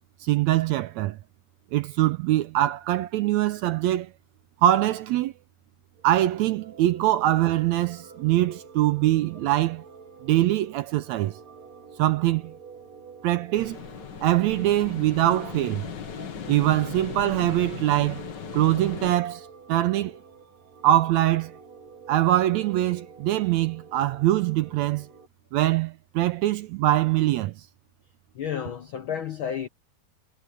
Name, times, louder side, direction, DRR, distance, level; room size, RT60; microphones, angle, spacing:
voice 1, 0.2-1.2 1.7-4.1 4.6-5.3 6.0-9.8 10.2-11.4 12.0-12.5 13.2-13.8 14.2-15.9 16.5-18.2 18.5-20.2 20.8-21.5 22.1-25.1 25.5-27.5, right 14 dB, 80° right, 1.7 m, -23 dB
sound 1, 6.0-25.3, right 5 dB, 55° right, 4.0 m, -48 dB
sound 2, 13.5-19.1, left 8 dB, 50° left, 1.3 m, -38 dB
voice 2, 28.3-29.7, left 8 dB, 80° left, 1.1 m, -31 dB
omnidirectional pair, 3.7 m